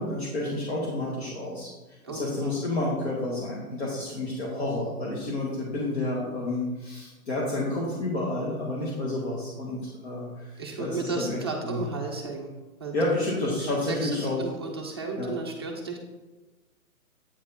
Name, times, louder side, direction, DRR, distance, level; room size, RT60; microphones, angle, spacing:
voice 1, 0.0-11.4 11.6-11.8 12.9-14.4 15.2-15.3, left 2 dB, 45° left, -5 dB, 1.8 m, -30 dB
voice 2, 2.0-2.6 10.6-12.5 12.8-13.2 13.6-16.0, right 3 dB, 20° right, -2 dB, 0.6 m, -34 dB
8.5 x 4.8 x 4.2 m, 1.2 s
hypercardioid pair, 170°, 44 cm